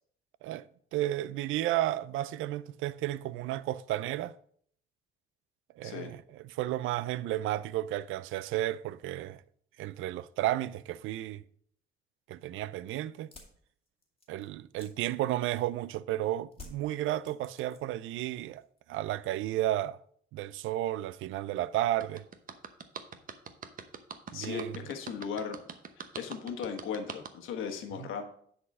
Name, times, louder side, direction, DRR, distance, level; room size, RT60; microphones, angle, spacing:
voice 1, 0.9-4.3 5.8-9.4 9.8-11.4 12.3-13.3 14.3-18.6 18.9-20.0 20.3-22.3 24.3-24.7 28.0-28.1, right 14 dB, 85° right, 0.4 m, -32 dB
voice 2, 5.8-6.1 24.3-25.6 26.2-28.2, left 6 dB, 85° left, 1.3 m, -37 dB
sound 1, 13.2-15.9 16.5-18.1 18.4-18.9, left 3 dB, 30° left, 2.2 m, -53 dB
sound 2, 22.0-27.3, right 6 dB, 45° right, 0.9 m, -43 dB
10.0 x 4.2 x 5.4 m
cardioid pair, 90°, 20 cm